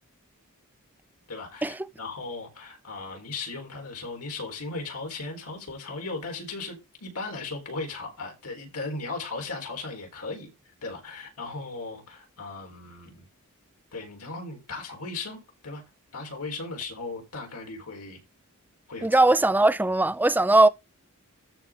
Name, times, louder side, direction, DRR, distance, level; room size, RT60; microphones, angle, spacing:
voice 1, 1.3-10.5 10.8-13.2 13.9-15.8 16.1-18.2 18.9-19.1, left 3 dB, 85° left, 4.1 m, -37 dB
voice 2, 19.0-20.7, right 2 dB, 10° right, 0.4 m, -19 dB
13.5 x 5.6 x 3.7 m
head